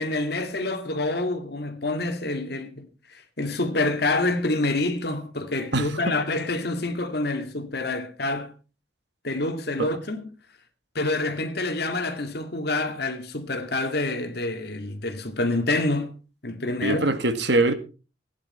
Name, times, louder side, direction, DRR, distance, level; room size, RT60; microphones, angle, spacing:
voice 1, 0.0-8.5 9.2-10.2 10.9-16.1 16.4-17.0, left 2 dB, 60° left, 2.2 m, -27 dB
voice 2, 5.7-6.1 9.8-9.9 16.8-17.7, right 2 dB, 70° right, 1.9 m, -23 dB
16.0 x 10.0 x 4.3 m
head